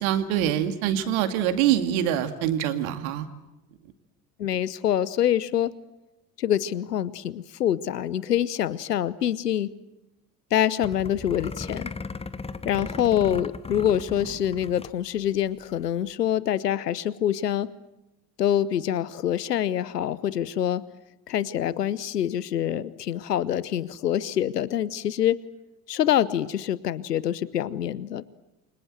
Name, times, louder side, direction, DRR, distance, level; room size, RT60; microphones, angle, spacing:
voice 1, 0.0-3.3, right 10 dB, 60° right, 9 dB, 2.4 m, -24 dB
voice 2, 4.4-5.7 6.4-9.7 10.5-11.9 12.6-17.7 18.4-20.8 21.3-25.4 25.9-28.3, left 10 dB, 80° left, 20 dB, 0.9 m, -25 dB
sound 1, 10.8-15.0 15.3-15.4 15.6-15.9, left 4 dB, 10° left, 1.2 m, -36 dB
29.0 x 25.0 x 7.8 m, 0.97 s
figure-of-eight pair, 65°, 48 cm